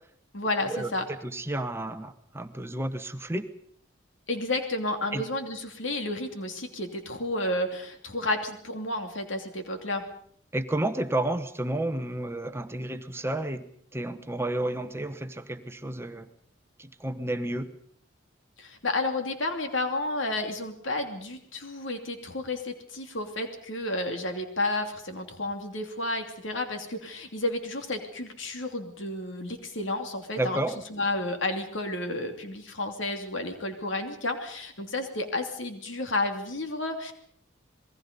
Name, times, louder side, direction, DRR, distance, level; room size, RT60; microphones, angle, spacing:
voice 1, 0.3-1.0 4.3-10.0 18.6-30.6 30.9-37.1, left 2 dB, 75° left, 5 dB, 2.8 m, -31 dB
voice 2, 1.2-3.5 5.1-5.2 10.5-16.3 16.8-17.7 30.4-30.8, right 1 dB, 15° right, 9 dB, 1.0 m, -31 dB
27.5 x 21.5 x 5.3 m, 0.62 s
head